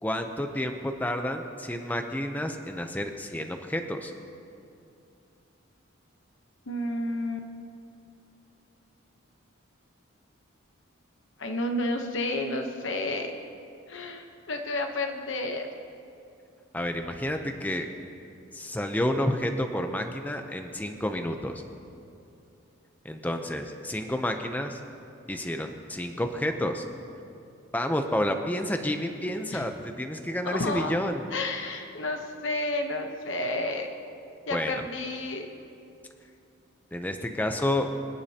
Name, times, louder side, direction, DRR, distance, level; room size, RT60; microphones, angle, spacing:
voice 1, 0.0-4.1 16.7-17.9 18.5-21.6 23.0-24.8 25.3-26.8 27.7-31.2 34.5-34.7 36.9-37.9, left 1 dB, 10° left, 5 dB, 0.6 m, -30 dB
voice 2, 6.7-7.5 11.4-13.3 13.9-15.7 29.5-29.6 30.4-31.0 31.3-33.9 34.5-35.5, left 2 dB, 65° left, 4 dB, 0.9 m, -31 dB
26.0 x 10.5 x 2.9 m, 2.6 s
head